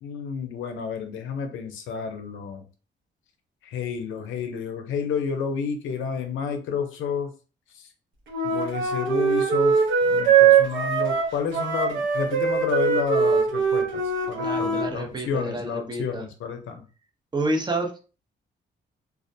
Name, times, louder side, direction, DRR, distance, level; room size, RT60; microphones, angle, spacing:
voice 1, 0.0-2.6 3.6-7.3 7.7-7.9 8.4-16.8, left 6 dB, 85° left, 6 dB, 0.5 m, -30 dB
Wind instrument woodwind instrument, 8.3-14.9, right 6 dB, 80° right, 0.8 m, -21 dB
voice 2, 14.4-16.2 17.3-17.9, right 1 dB, 20° right, 2 dB, 0.6 m, -29 dB
2.3 x 2.1 x 2.6 m, 0.35 s
cardioid pair, 90°, 20 cm